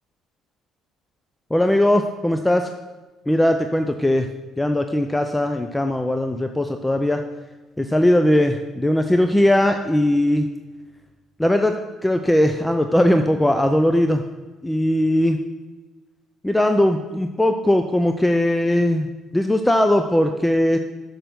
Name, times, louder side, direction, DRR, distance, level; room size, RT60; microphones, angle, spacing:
voice 1, 1.5-2.7 3.3-4.3 4.6-7.2 7.8-10.5 11.4-11.7 12.0-14.2 14.6-15.4 16.4-20.8, left 1 dB, 10° left, 6 dB, 0.5 m, -19 dB
6.7 x 6.5 x 6.1 m, 1.2 s
supercardioid pair, 80°, 0 cm